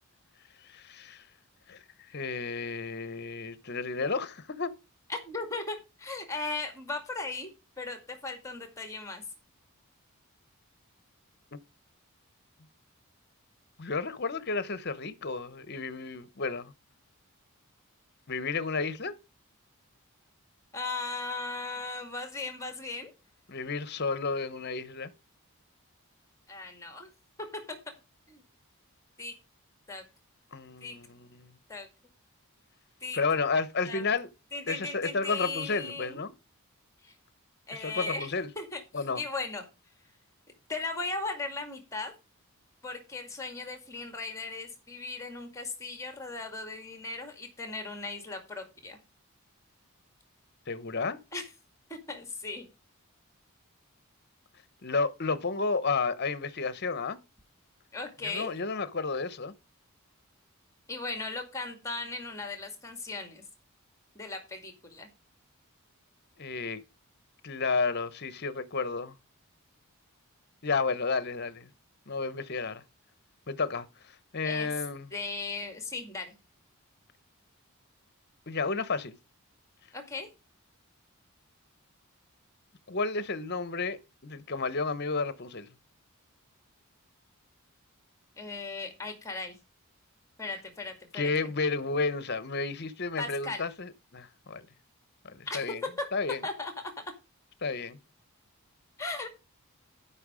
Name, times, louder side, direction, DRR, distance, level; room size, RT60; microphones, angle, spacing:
voice 1, 0.6-1.2 1.7-1.8 2.1-4.7 11.5-11.6 13.8-16.7 18.3-19.1 23.5-25.1 30.5-31.5 33.1-34.3 34.7-36.3 37.8-38.5 38.9-39.2 50.7-51.2 54.8-57.2 58.2-59.5 66.4-66.8 67.4-69.1 70.6-71.7 72.1-72.8 73.5-75.1 78.5-79.2 82.9-85.7 91.1-94.7 95.2-95.8 96.1-96.4 97.6-98.0, left 4 dB, 50° left, 0.9 m, -32 dB
voice 2, 5.1-7.5 7.8-9.2 20.7-23.1 26.5-27.1 27.5-27.8 28.3-28.4 29.2-29.3 29.9-30.0 30.8-31.0 31.7-31.9 33.0-33.2 33.9-34.0 34.5-36.3 37.0-37.1 37.7-39.7 40.7-42.1 42.8-49.0 51.3-51.5 51.9-52.7 57.9-58.5 60.9-63.4 64.2-65.1 74.4-74.7 75.1-76.3 79.9-80.3 88.4-89.6 90.4-91.3 93.2-93.6 95.5-95.6 96.0-96.1 96.4-96.7 99.0-99.4, left 3 dB, 15° left, 2.1 m, -37 dB
12.0 x 5.7 x 4.9 m
head